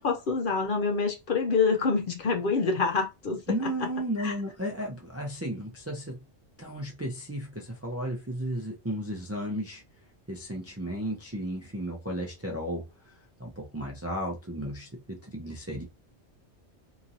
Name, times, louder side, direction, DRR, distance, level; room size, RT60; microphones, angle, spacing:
voice 1, 0.0-3.4 4.2-4.3, left 4 dB, 55° left, 0.7 m, -26 dB
voice 2, 3.5-6.2 6.6-9.8 10.3-15.8, equal, 20° right, 0.4 m, -34 dB
2.9 x 2.6 x 2.6 m
omnidirectional pair, 1.2 m